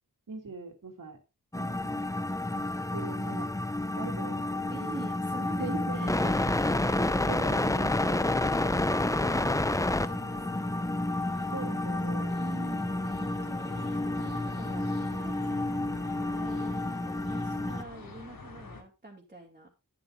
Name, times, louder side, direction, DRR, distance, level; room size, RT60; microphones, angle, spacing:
voice 1, 0.3-1.2 2.6-3.5 4.0-4.8 5.6-6.3 7.3-7.8 11.5-12.3, right 4 dB, 65° right, 3 dB, 3.2 m, -41 dB
sound 1, 1.5-17.8, left 2 dB, 10° left, 0.5 m, -30 dB
voice 2, 1.5-2.2 4.7-10.7 12.3-15.8 16.1-19.7, right 2 dB, 25° right, -4 dB, 2.8 m, -46 dB
sound 2, 7.4-18.8, left 4 dB, 85° left, 2.6 m, -46 dB
11.5 x 10.5 x 2.7 m, 0.28 s
wide cardioid pair, 105°, 35 cm